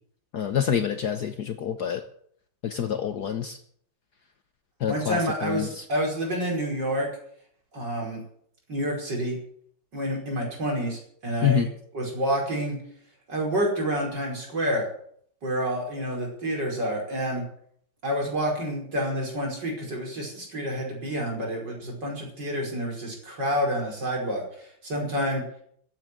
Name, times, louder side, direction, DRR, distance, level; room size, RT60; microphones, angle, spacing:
voice 1, 0.3-2.0 2.6-3.6 4.8-5.8 11.4-11.7, left 8 dB, 60° left, 8 dB, 1.4 m, -27 dB
voice 2, 4.9-7.1 7.7-8.2 8.7-9.4 9.9-11.7 11.9-12.8 13.3-14.8 15.4-17.4 18.0-25.4, equal, 60° right, 0 dB, 5.8 m, -28 dB
14.5 x 9.1 x 9.5 m, 0.63 s
omnidirectional pair, 2.2 m